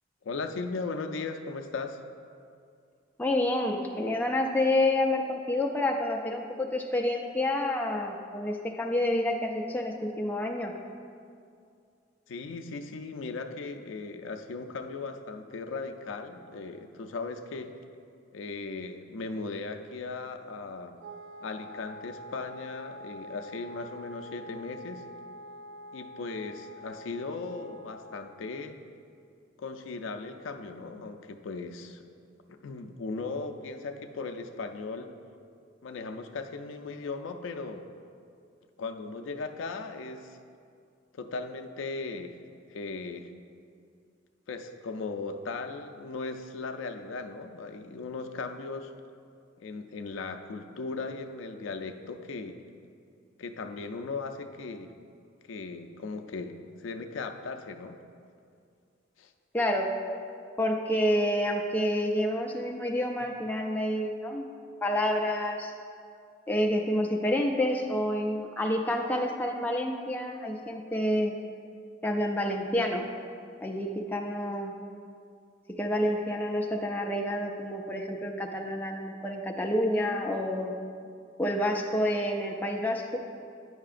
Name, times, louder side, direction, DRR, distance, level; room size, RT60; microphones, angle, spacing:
voice 1, 0.2-2.0 12.3-17.7 18.3-21.0 21.4-25.0 25.9-28.8 29.6-32.0 32.5-35.1 35.8-37.8 38.8-40.4 41.1-42.3 42.7-43.3 44.5-48.9 49.6-52.6 53.4-54.9 55.5-58.0 59.2-59.3, left 3 dB, 80° left, 6 dB, 0.4 m, -37 dB
voice 2, 3.2-10.7 59.5-60.0 60.6-64.5 64.8-65.7 66.5-71.4 72.0-73.1 73.6-74.7 75.8-80.7 81.4-83.2, left 1 dB, 10° left, 1 dB, 0.3 m, -28 dB
Wind instrument woodwind instrument, 21.0-28.4, equal, 85° right, 0.3 m, -46 dB
9.5 x 5.6 x 2.5 m, 2.4 s
head